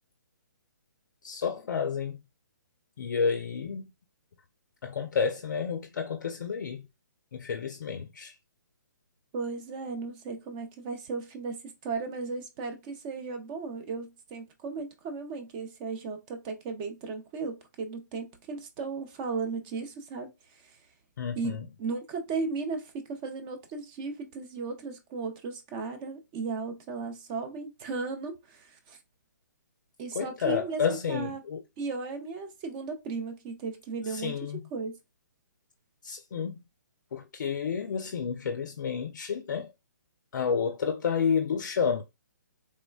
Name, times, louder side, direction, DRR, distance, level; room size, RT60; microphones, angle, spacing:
voice 1, 1.2-2.2 3.0-3.9 4.8-6.9 7.3-8.3 21.2-21.7 30.1-31.6 34.1-34.6 36.0-36.6 37.1-39.7 40.3-42.0, left 6 dB, 70° left, 0.3 m, -30 dB
voice 2, 9.3-20.8 21.4-29.0 30.0-30.8 31.1-31.4 31.8-34.9, right 4 dB, 25° right, 0.4 m, -36 dB
3.2 x 2.1 x 2.2 m
hypercardioid pair, 145°, 10 cm